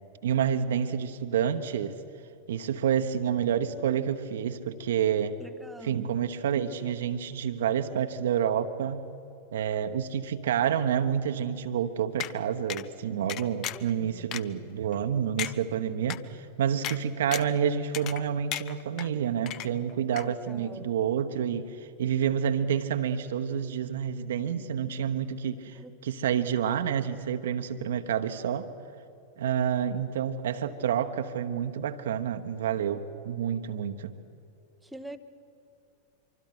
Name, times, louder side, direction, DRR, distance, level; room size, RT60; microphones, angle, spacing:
voice 1, 0.2-2.0 2.5-5.4 5.8-9.0 9.5-28.7 29.4-34.1, right 8 dB, 60° right, 1.1 m, -29 dB
voice 2, 5.4-6.1 13.7-13.8 14.1-14.3 20.2-20.9 25.8-25.9 34.9-35.2, right 1 dB, 5° right, 1.0 m, -44 dB
sound 1, 12.2-12.3 12.7-12.8 13.3-13.9 14.3-14.4 14.9-15.0 15.4-15.5 16.1-16.2 16.8-17.0 17.3-17.6 17.9-18.2 18.5-19.1 19.5-19.9 20.2-20.3, left 12 dB, 35° left, 0.7 m, -34 dB
25.5 x 24.5 x 6.1 m
figure-of-eight pair, 90°, 0 cm